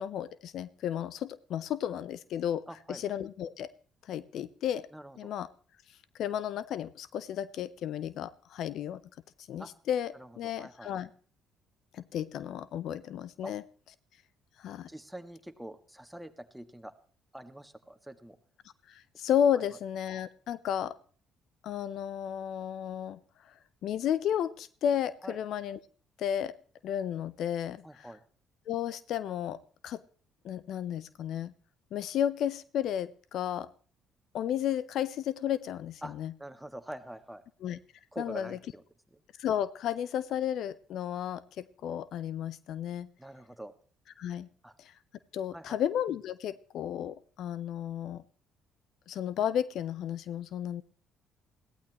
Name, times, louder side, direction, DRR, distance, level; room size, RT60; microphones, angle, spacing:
voice 1, 0.0-2.6 2.9-3.7 4.0-4.9 5.2-5.5 6.2-9.0 9.5-11.1 11.9-13.6 14.6-14.9 18.9-21.0 21.6-23.2 23.4-23.5 23.8-25.8 26.2-26.5 26.8-28.1 28.7-30.0 30.4-31.5 31.9-33.7 34.3-36.3 37.6-37.8 38.2-38.6 39.4-43.1 44.2-44.5 44.8-44.9 45.3-48.2 49.1-50.8, left 9 dB, 65° left, 18 dB, 0.6 m, -33 dB
voice 2, 2.7-3.0 4.9-5.3 9.6-9.7 10.1-10.9 13.4-13.5 14.9-16.9 17.3-18.4 25.2-25.4 27.8-28.2 36.0-36.1 36.4-37.4 38.1-38.8 43.2-43.7 44.6-44.7 45.5-45.8, right 1 dB, 5° right, 8 dB, 1.7 m, -45 dB
21.0 x 15.5 x 3.0 m, 0.43 s
hypercardioid pair, 55°, 0 cm